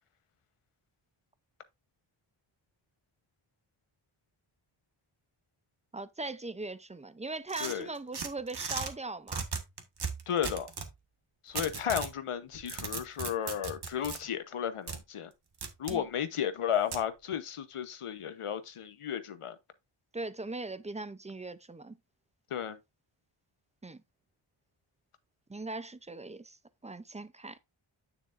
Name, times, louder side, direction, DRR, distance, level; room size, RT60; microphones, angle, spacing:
voice 1, 5.9-9.5 15.9-16.1 20.1-22.0 23.8-24.0 25.5-26.6 26.8-27.6, right 2 dB, 15° right, 0.5 m, -40 dB
sound 1, 7.5-8.9 9.3-10.9 11.6-12.1 12.5-14.2 14.9-15.0 15.6-16.0 16.9-17.1, right 5 dB, 50° right, 1.5 m, -37 dB
voice 2, 10.3-10.7 11.4-15.3 15.8-19.6 22.5-22.8, left 9 dB, 85° left, 1.1 m, -33 dB
9.4 x 6.9 x 2.6 m
wide cardioid pair, 145°, 50 cm